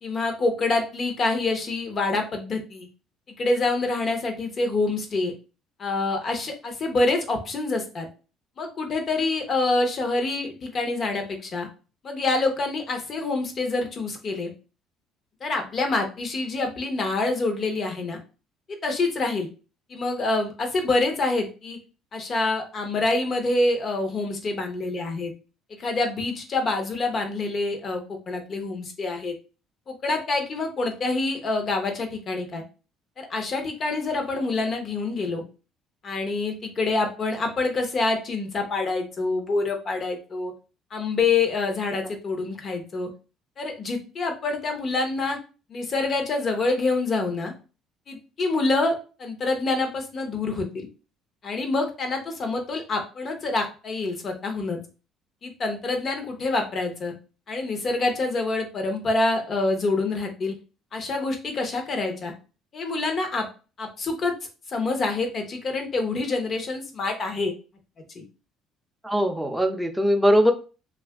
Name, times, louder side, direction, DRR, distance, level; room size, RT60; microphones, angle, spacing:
voice 1, 0.0-2.9 3.4-5.3 5.8-8.1 8.6-11.7 12.0-14.5 15.4-18.2 18.8-19.5 19.9-21.8 22.1-25.3 25.8-29.3 29.9-32.6 33.2-35.4 36.0-40.5 40.9-43.1 43.6-45.4 45.7-47.5 48.1-50.9 51.4-54.8 55.4-57.1 57.5-60.5 60.9-62.3 62.7-63.5 63.8-64.3 64.7-67.5 68.1-68.2, left 3 dB, 45° left, 4 dB, 0.8 m, -26 dB
voice 2, 69.0-70.5, equal, ahead, 4 dB, 0.5 m, -20 dB
2.7 x 2.4 x 3.4 m, 0.34 s
supercardioid pair, 90°, 0 cm